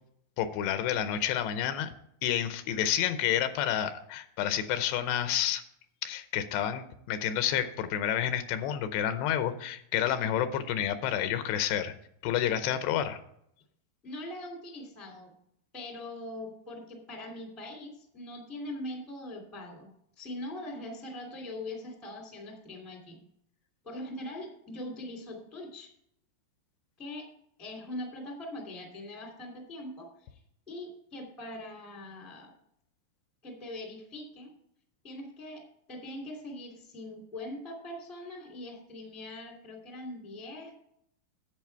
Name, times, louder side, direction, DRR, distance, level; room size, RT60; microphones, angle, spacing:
voice 1, 0.4-1.9 2.2-5.6 6.0-11.9 12.2-13.2, left 10 dB, 80° left, 10 dB, 2.8 m, -29 dB
voice 2, 14.0-15.3 15.7-19.9 20.1-23.2 23.8-25.9 27.0-27.3 27.6-30.4 30.7-32.5 33.4-34.5 35.0-35.6 35.9-40.7, left 1 dB, ahead, 1 dB, 1.1 m, -42 dB
11.0 x 8.0 x 4.5 m, 0.71 s
omnidirectional pair, 5.0 m